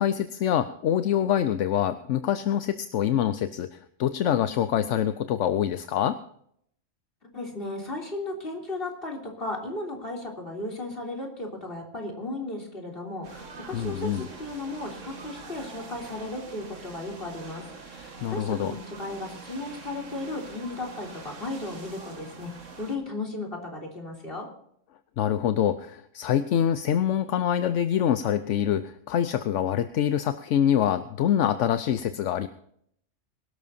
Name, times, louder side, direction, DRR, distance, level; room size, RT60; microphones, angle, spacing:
voice 1, 0.0-6.2 13.7-14.3 18.2-18.7 25.2-32.5, left 10 dB, 80° left, 11 dB, 1.0 m, -25 dB
voice 2, 7.3-22.5 22.8-24.5, left 2 dB, 50° left, 0 dB, 3.6 m, -35 dB
sound 1, 13.2-23.0, right 4 dB, 85° right, 2.0 m, -44 dB
22.5 x 12.5 x 2.8 m, 0.68 s
omnidirectional pair, 1.3 m